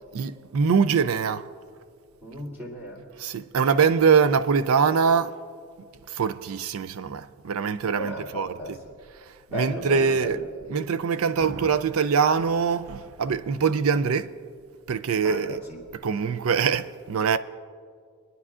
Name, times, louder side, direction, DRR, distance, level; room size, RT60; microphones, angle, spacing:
voice 1, 0.1-1.4 3.2-5.3 6.1-8.5 9.5-10.4 10.7-14.3 14.9-15.6 16.0-17.4, right 6 dB, 75° right, 0.4 m, -23 dB
voice 2, 2.2-3.0 3.8-4.0 7.9-9.0 9.5-10.5 15.2-15.8 16.1-16.3, equal, 10° right, 2.6 m, -36 dB
28.5 x 10.0 x 2.5 m
head